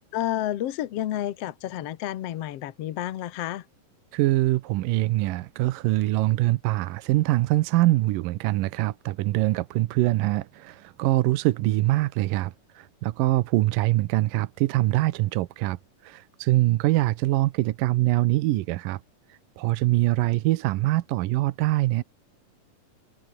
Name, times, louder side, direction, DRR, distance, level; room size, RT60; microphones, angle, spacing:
voice 1, 0.1-3.6, left 12 dB, 65° left, 1.6 m, -30 dB
voice 2, 4.1-19.0 19.3-22.0, right 17 dB, 80° right, 2.4 m, -24 dB
omnidirectional pair, 3.9 m